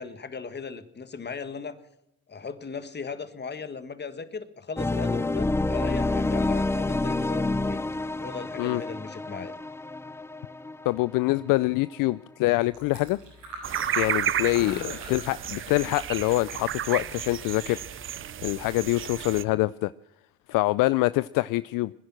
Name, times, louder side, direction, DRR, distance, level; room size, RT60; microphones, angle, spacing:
voice 1, 0.0-1.8 2.3-7.8 8.2-9.5 14.4-15.1, left 5 dB, 30° left, 1.6 m, -38 dB
sound 1, 4.8-11.6, left 2 dB, 5° left, 0.6 m, -28 dB
voice 2, 10.9-13.2 13.9-19.9 20.5-21.9, left 19 dB, 65° left, 0.5 m, -25 dB
Fill (with liquid), 12.6-18.8, right 3 dB, 90° right, 7.0 m, -43 dB
sound 2, 13.6-19.4, right 10 dB, 35° right, 0.6 m, -32 dB
20.5 x 10.5 x 6.2 m
hypercardioid pair, 65°, 36 cm